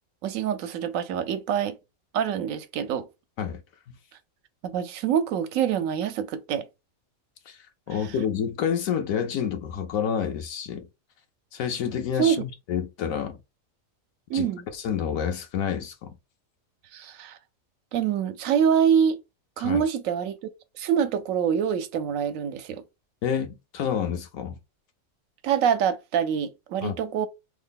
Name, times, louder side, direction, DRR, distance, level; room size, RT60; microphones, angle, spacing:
voice 1, 0.2-1.8 2.1-3.1 4.6-6.7 12.2-12.4 14.3-14.6 16.9-17.4 17.9-19.2 19.6-20.4 20.8-22.8 25.4-27.3, right 8 dB, 75° right, 1.0 m, -25 dB
voice 2, 7.9-10.9 11.5-13.4 14.3-16.2 19.6-19.8 23.2-24.6 26.8-27.0, left 8 dB, 80° left, 1.1 m, -29 dB
3.3 x 2.1 x 3.5 m
omnidirectional pair, 1.4 m